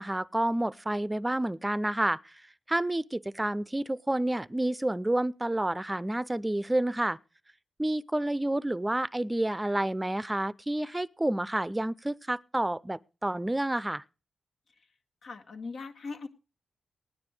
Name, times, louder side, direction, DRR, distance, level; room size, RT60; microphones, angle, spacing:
voice 1, 0.0-2.3 2.7-7.2 7.8-14.0, right 1 dB, 15° right, 0.6 m, -29 dB
voice 2, 15.2-16.3, left 4 dB, 70° left, 1.8 m, -40 dB
16.5 x 9.8 x 4.8 m
cardioid pair, 50°, 0 cm